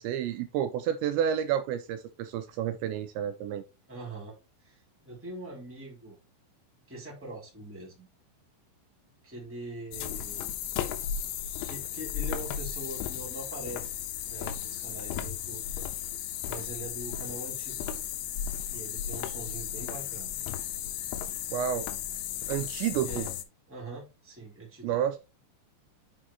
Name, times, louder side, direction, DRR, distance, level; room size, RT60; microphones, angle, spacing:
voice 1, 0.0-3.6 21.5-21.9 22.5-23.3 24.8-25.2, right 9 dB, 80° right, 2.9 m, -30 dB
voice 2, 3.9-6.2 6.9-8.1 9.2-10.6 11.2-15.8 16.4-17.9 18.7-20.4 23.0-23.3 23.7-25.0, right 2 dB, 5° right, 2.4 m, -43 dB
sound 1, 9.9-23.4, left 9 dB, 85° left, 3.2 m, -35 dB
7.6 x 5.2 x 4.1 m
omnidirectional pair, 5.4 m